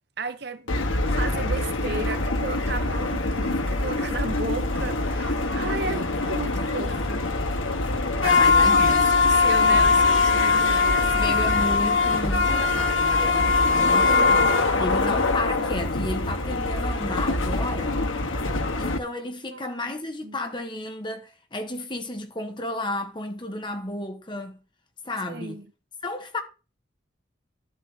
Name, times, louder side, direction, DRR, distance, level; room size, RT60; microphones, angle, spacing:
voice 1, 0.2-0.7 1.1-7.2 8.2-8.4 8.8-11.4 14.1-14.4 19.5-19.9 20.2-20.4 25.3-25.6, right 3 dB, 55° right, 1.0 m, -34 dB
sound 1, 0.7-19.0, left 3 dB, 85° left, 1.5 m, -22 dB
voice 2, 5.9-6.2 8.2-9.2 11.0-18.0 18.8-24.6 25.0-25.6 26.0-26.4, left 1 dB, 25° left, 1.6 m, -32 dB
11.5 x 7.8 x 4.5 m
head